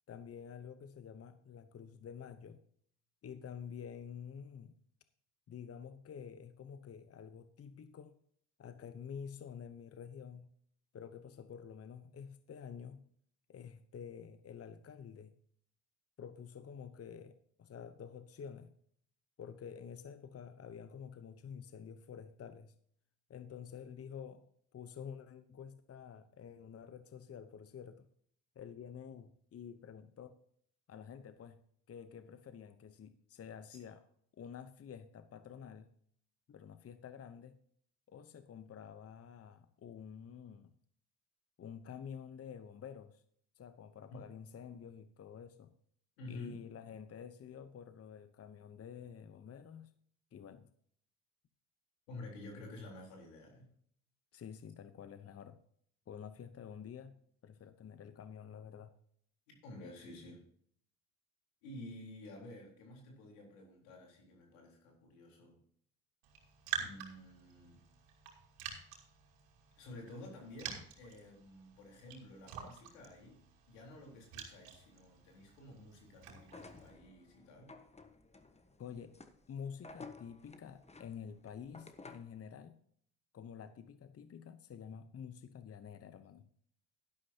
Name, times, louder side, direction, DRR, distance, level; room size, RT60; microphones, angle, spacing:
voice 1, 0.1-2.6 3.2-4.8 5.5-8.1 8.6-10.5 10.9-13.0 13.5-15.3 16.2-18.7 19.4-22.7 23.3-28.1 28.6-30.4 30.9-34.0 34.3-35.9 36.5-37.6 38.1-40.7 41.6-43.2 43.6-45.7 46.3-49.9 50.3-50.7 54.3-55.6 56.1-57.1 57.4-58.9 78.8-79.2 79.5-82.8 83.3-86.5, left 7 dB, 40° left, 11 dB, 0.9 m, -49 dB
voice 2, 46.2-46.6 52.1-53.7 59.5-60.4 61.6-65.6 66.8-67.8 69.8-77.8, left 2 dB, 90° left, 0 dB, 3.9 m, -51 dB
Raindrop, 66.2-76.9, right 7 dB, 85° right, 2.7 m, -48 dB
sound 1, 76.4-82.4, left 3 dB, 15° left, 1.2 m, -55 dB
11.5 x 11.5 x 2.9 m, 0.63 s
supercardioid pair, 70°, 37 cm